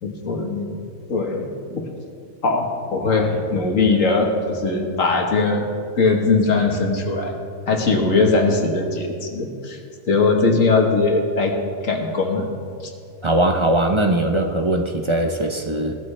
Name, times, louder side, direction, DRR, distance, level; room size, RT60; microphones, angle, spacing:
voice 1, 0.0-0.8 1.1-1.9 2.4-5.7 6.0-7.4 7.7-9.8 10.1-11.5 11.8-12.5, left 3 dB, 70° left, 2 dB, 1.8 m, -20 dB
voice 2, 13.2-15.9, right 1 dB, 30° right, 3 dB, 0.6 m, -20 dB
17.5 x 13.0 x 3.3 m, 2.4 s
omnidirectional pair, 1.4 m